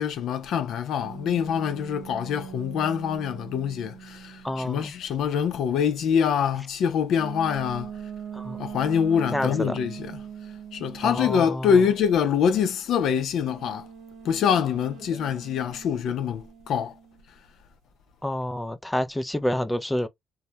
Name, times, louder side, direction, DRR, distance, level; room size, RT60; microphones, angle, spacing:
voice 1, 0.0-7.9 8.6-10.2 10.7-13.9 14.3-16.9, left 7 dB, 80° left, 0.4 m, -25 dB
sound 1, 1.0-4.8 7.1-11.5 13.4-17.2, right 8 dB, 80° right, 0.7 m, -41 dB
voice 2, 4.4-4.9 8.3-8.6 9.3-9.8 11.0-11.8 18.2-20.1, left 1 dB, 10° left, 0.3 m, -28 dB
2.2 x 2.0 x 2.7 m
cardioid pair, 90°, 0 cm